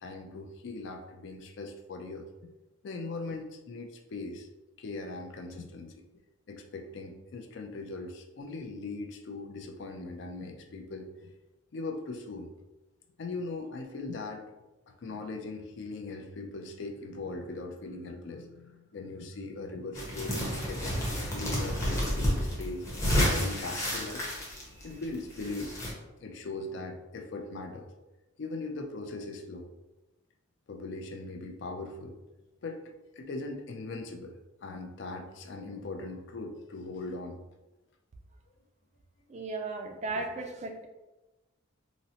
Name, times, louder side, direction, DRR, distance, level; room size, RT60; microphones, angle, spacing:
voice 1, 0.0-2.3 2.8-4.5 4.8-5.9 6.5-11.3 11.7-12.5 13.2-14.4 14.9-21.0 21.3-22.9 23.3-24.2 24.8-25.8 26.2-27.9 28.4-29.7 30.7-32.2 32.6-32.8 33.2-37.4 40.1-40.2, left 3 dB, 60° left, 4 dB, 0.4 m, -40 dB
sound 1, 19.9-25.9, equal, 15° left, 0.6 m, -30 dB
voice 2, 39.3-40.9, right 3 dB, 35° right, 3 dB, 0.3 m, -36 dB
3.9 x 2.0 x 2.7 m, 1.1 s
head